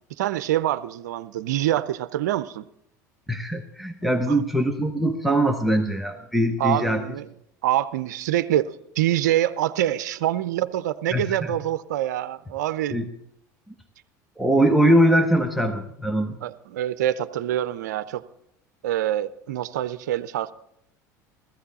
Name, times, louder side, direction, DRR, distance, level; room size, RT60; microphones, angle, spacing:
voice 1, 0.2-2.7 4.0-4.4 6.6-7.3 7.6-13.0 16.4-18.2 18.8-20.5, right 12 dB, 80° right, 14 dB, 0.6 m, -25 dB
voice 2, 3.3-7.0 11.1-11.5 12.9-13.1 14.4-16.4, right 1 dB, ahead, 5 dB, 1.2 m, -22 dB
16.0 x 14.5 x 4.1 m, 0.75 s
hypercardioid pair, 80°, 9 cm